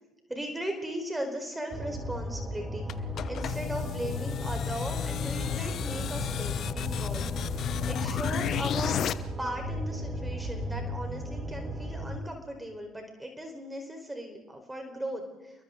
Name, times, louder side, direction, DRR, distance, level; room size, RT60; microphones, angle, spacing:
voice 1, 0.3-2.9 3.3-7.4 7.8-9.1 9.4-15.5, equal, 10° right, 4 dB, 4.3 m, -37 dB
sound 1, 1.7-12.2, equal, 30° right, 3.0 m, -36 dB
sound 2, 2.9-9.1, left 10 dB, 55° left, 0.9 m, -32 dB
30.0 x 22.5 x 3.9 m, 1.1 s
hypercardioid pair, 60°, 0 cm